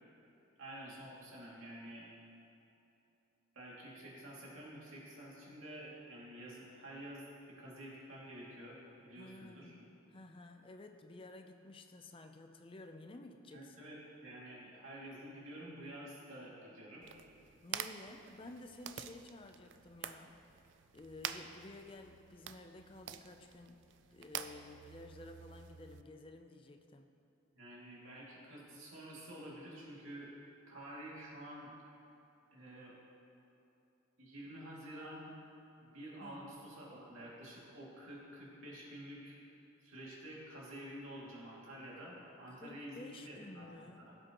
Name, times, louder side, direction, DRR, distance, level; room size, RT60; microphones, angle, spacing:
voice 1, 0.6-2.1 3.5-9.7 13.5-17.1 27.5-30.3 30.7-31.7 32.5-33.0 34.2-35.3 35.8-39.4 39.8-44.2, right 1 dB, 75° right, -5 dB, 2.5 m, -49 dB
voice 2, 9.2-13.9 17.6-20.4 20.9-27.1 36.2-36.5 42.5-44.1, left 2 dB, 25° left, 5 dB, 0.5 m, -53 dB
sound 1, 17.0-26.0, right 9 dB, 60° right, 0.4 m, -48 dB
16.5 x 7.6 x 3.0 m, 2.9 s
head